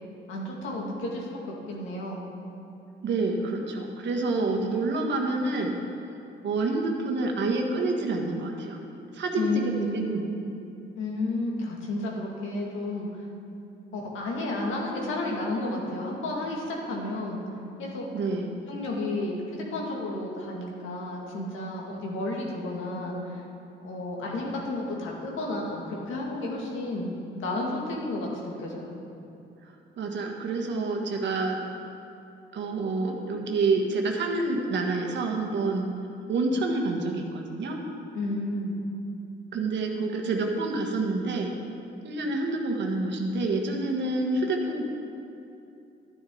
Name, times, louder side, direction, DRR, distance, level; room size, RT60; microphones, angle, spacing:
voice 1, 0.3-2.2 9.4-10.1 11.0-13.3 13.9-17.4 17.8-18.4 18.7-23.4 23.8-28.3 28.6-29.0 38.1-38.7, left 2 dB, 85° left, -2 dB, 2.1 m, -32 dB
voice 2, 3.0-5.7 6.4-8.8 9.1-10.3 18.1-18.5 30.0-31.6 32.5-35.9 36.3-37.8 39.5-41.5 42.0-44.8, right 3 dB, 65° right, 1 dB, 1.5 m, -28 dB
12.0 x 10.0 x 3.9 m, 2.7 s
cardioid pair, 90°, 20 cm